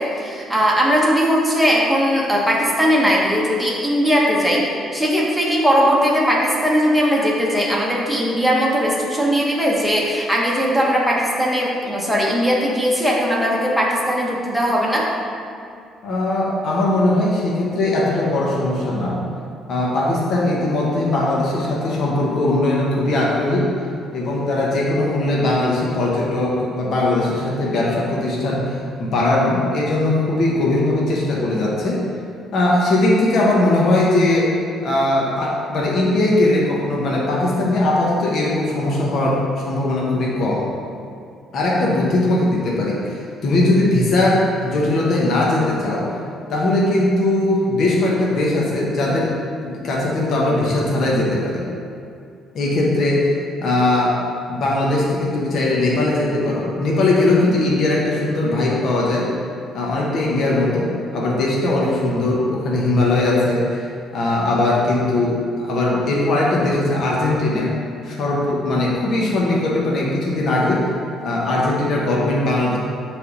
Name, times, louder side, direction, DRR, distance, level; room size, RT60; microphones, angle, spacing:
voice 1, 0.0-4.6 4.9-15.1, equal, ahead, -4 dB, 1.1 m, -19 dB
voice 2, 16.0-19.2 19.7-23.7 24.1-32.0 32.5-34.5 34.8-40.7 41.5-46.1 46.5-49.3 49.6-51.6 52.5-53.3 53.6-54.2 54.5-59.3 59.7-63.7 64.1-67.7 68.0-70.9 71.2-72.8, left 2 dB, 50° left, -4 dB, 1.1 m, -19 dB
7.5 x 3.5 x 5.5 m, 2.4 s
cardioid pair, 145°, 0 cm